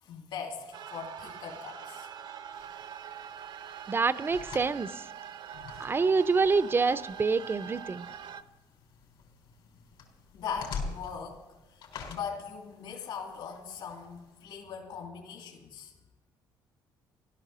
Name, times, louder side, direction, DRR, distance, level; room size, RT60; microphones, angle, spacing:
voice 1, 0.0-2.1 10.3-11.4 11.7-15.9, left 6 dB, 65° left, 1 dB, 2.8 m, -40 dB
sound 1, 0.7-8.4, right 8 dB, 60° right, 0.7 m, -44 dB
sound 2, 2.5-14.5, left 4 dB, 85° left, 3.8 m, -46 dB
voice 2, 3.9-5.1 5.8-8.1, right 4 dB, 25° right, 14 dB, 0.5 m, -27 dB
15.5 x 12.5 x 6.8 m, 1.1 s
cardioid pair, 115°, 9 cm